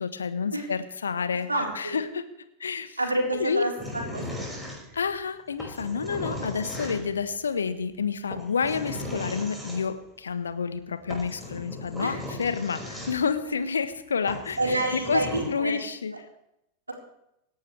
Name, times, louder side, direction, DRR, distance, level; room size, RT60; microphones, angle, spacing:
voice 1, 0.0-1.5 1.7-2.2 2.6-3.0 3.4-3.6 4.9-16.1, left 6 dB, 70° left, 11 dB, 1.2 m, -29 dB
voice 2, 1.5-1.9 3.0-4.2 12.0-12.2 13.4-13.5 14.6-15.8, right 2 dB, 80° right, -1 dB, 4.3 m, -28 dB
sound 1, 3.8-5.1 5.6-7.2 8.3-9.8 10.8-10.9 11.1-13.4 13.9-14.0 14.3-15.4, left 1 dB, ahead, 5.9 m, -37 dB
25.0 x 12.0 x 3.4 m, 0.80 s
figure-of-eight pair, 90°, 0 cm